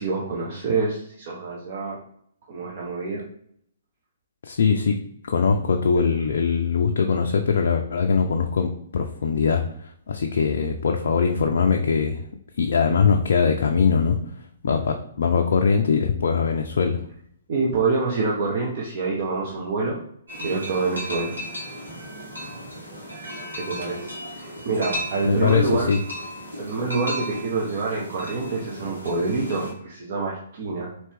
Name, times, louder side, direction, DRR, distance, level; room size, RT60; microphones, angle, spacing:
voice 1, 0.0-2.0 2.5-3.2 17.5-20.0 20.3-21.4 23.5-25.9 26.6-30.9, right 3 dB, 45° right, -3 dB, 0.7 m, -26 dB
voice 2, 4.4-5.0 5.3-12.2 12.6-14.2 14.6-17.0 25.3-26.0, left 5 dB, 55° left, 2 dB, 0.4 m, -21 dB
sound 1, 20.3-29.7, equal, 85° right, 1.5 m, -35 dB
4.3 x 2.9 x 3.4 m, 0.67 s
figure-of-eight pair, 125°, 0 cm